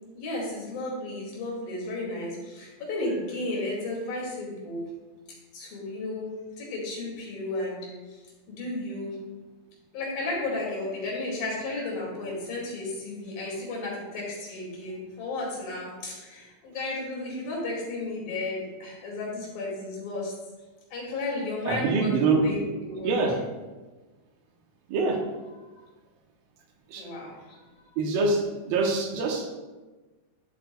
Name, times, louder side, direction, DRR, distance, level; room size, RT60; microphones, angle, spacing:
voice 1, 0.2-4.9 5.5-6.3 6.6-8.2 8.5-9.2 9.9-20.3 20.9-23.4 25.5-25.7 27.0-27.6, left 2 dB, 75° left, -4 dB, 4.1 m, -33 dB
voice 2, 21.7-22.6 23.0-23.3 24.9-25.2 26.9-27.0 28.0-29.5, right 3 dB, 85° right, 2 dB, 2.8 m, -24 dB
11.5 x 7.9 x 2.3 m, 1.2 s
omnidirectional pair, 4.1 m